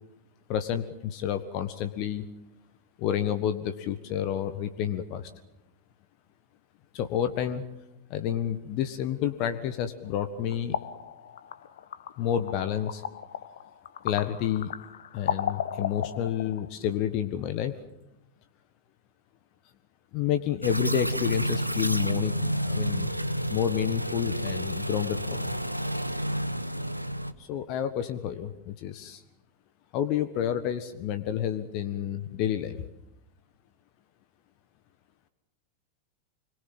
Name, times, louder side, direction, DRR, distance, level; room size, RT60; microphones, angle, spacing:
voice 1, 0.5-2.3 3.0-5.3 6.9-7.6 8.1-10.8 12.2-13.0 14.0-14.7 15.1-17.7 20.1-23.2 23.5-25.5 27.4-29.2 29.9-32.8, left 10 dB, 40° left, 10 dB, 1.5 m, -30 dB
sound 1, 10.0-16.7, left 9 dB, 60° left, 1.2 m, -35 dB
sound 2, 20.6-27.3, equal, 90° right, 1.1 m, -29 dB
26.0 x 22.0 x 7.6 m, 0.88 s
figure-of-eight pair, 90°, 0 cm